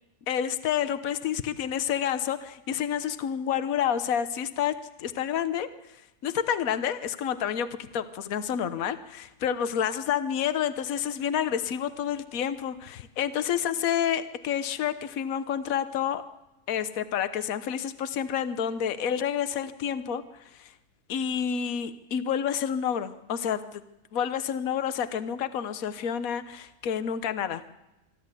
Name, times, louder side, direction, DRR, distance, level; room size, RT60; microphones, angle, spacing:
voice 1, 0.3-5.7 6.2-16.2 16.7-20.2 20.6-20.7 21.1-23.8 24.1-27.6, left 9 dB, 65° left, 12 dB, 1.3 m, -29 dB
25.0 x 13.0 x 8.3 m, 0.98 s
omnidirectional pair, 1.6 m